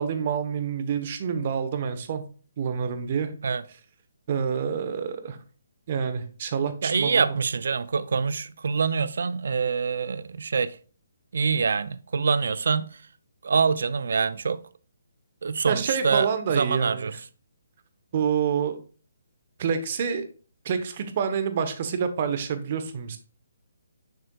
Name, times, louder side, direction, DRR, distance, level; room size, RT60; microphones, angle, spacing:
voice 1, 0.0-2.2 2.6-3.3 4.3-5.4 5.9-7.3 15.7-17.1 18.1-18.8 19.6-20.2 20.6-23.2, right 7 dB, 40° right, 0.9 m, -27 dB
voice 2, 6.8-10.8 11.3-13.0 13.4-14.6 15.4-16.3 16.5-17.2, right 5 dB, 65° right, 0.4 m, -25 dB
6.7 x 6.4 x 2.3 m
hypercardioid pair, 155°, 0 cm